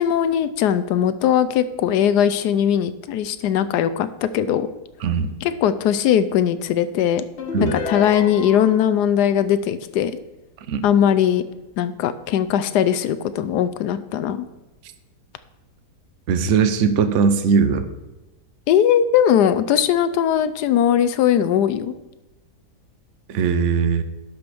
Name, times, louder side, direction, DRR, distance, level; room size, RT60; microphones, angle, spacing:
voice 1, 0.0-4.7 5.4-7.2 7.6-10.1 10.8-11.4 11.8-14.4 18.7-21.9, left 9 dB, 75° left, 12 dB, 1.1 m, -19 dB
voice 2, 5.0-5.3 7.5-7.8 10.7-10.8 16.3-17.9 23.3-24.0, right 6 dB, 55° right, 10 dB, 0.9 m, -19 dB
sound 1, 7.4-8.9, left 4 dB, 50° left, 0.9 m, -29 dB
11.5 x 5.1 x 6.1 m, 1.0 s
omnidirectional pair, 1.8 m